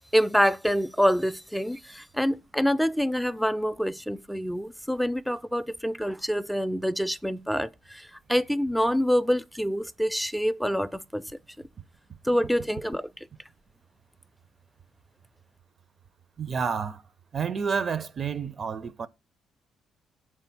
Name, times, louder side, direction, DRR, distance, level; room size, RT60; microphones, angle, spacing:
voice 1, 0.1-11.3 12.2-13.1, equal, ahead, 0.4 m, -26 dB
voice 2, 16.4-17.0 17.3-19.1, right 6 dB, 45° right, 0.7 m, -29 dB
6.7 x 4.5 x 5.9 m
cardioid pair, 90°, 0 cm